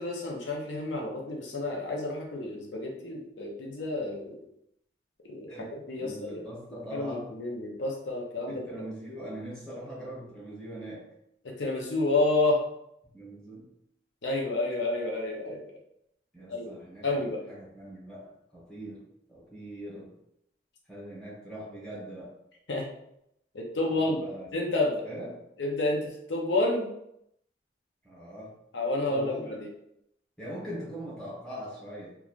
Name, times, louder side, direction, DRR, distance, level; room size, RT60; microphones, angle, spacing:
voice 1, 0.0-4.4 5.3-5.5 5.9-6.3 6.9-8.6 11.4-12.6 14.2-15.6 16.5-16.7 17.0-17.4 22.7-22.8 23.5-24.2 24.5-25.0 25.6-26.9 28.7-29.7, left 2 dB, 85° left, -1 dB, 0.6 m, -29 dB
voice 2, 5.5-7.3 8.5-11.1 13.1-13.7 16.3-19.0 19.3-20.1 20.9-22.3 23.8-24.5 25.0-25.4 28.0-28.6 29.1-29.5 30.4-32.2, right 1 dB, 5° left, -7 dB, 1.1 m, -41 dB
3.0 x 2.3 x 2.4 m, 0.78 s
head